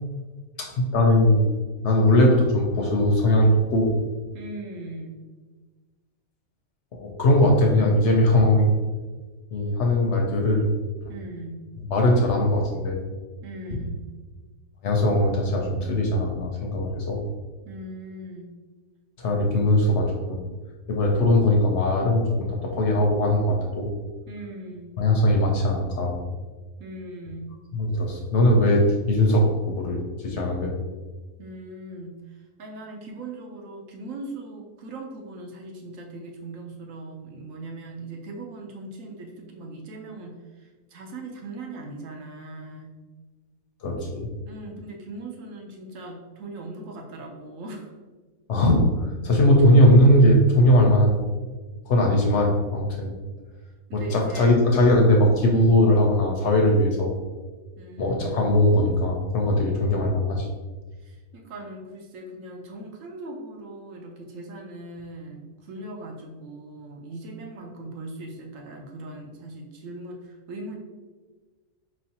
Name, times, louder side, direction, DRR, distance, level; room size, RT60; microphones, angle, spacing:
voice 1, 0.6-1.5 1.8-3.9 6.9-8.7 9.5-10.7 11.8-13.0 14.8-17.2 19.2-20.4 20.9-23.9 25.0-26.2 27.7-30.7 43.8-44.3 48.5-51.2 51.9-53.1 53.9-57.1 58.0-60.5, left 1 dB, 60° left, 0 dB, 0.8 m, -20 dB
voice 2, 4.3-5.2 11.1-11.6 13.4-14.0 17.6-18.5 24.3-24.9 26.8-27.6 31.4-42.9 44.4-47.9 53.9-54.6 57.8-58.2 61.0-70.8, right 2 dB, 70° right, 1 dB, 1.0 m, -39 dB
4.5 x 3.1 x 2.8 m, 1.3 s
omnidirectional pair, 1.5 m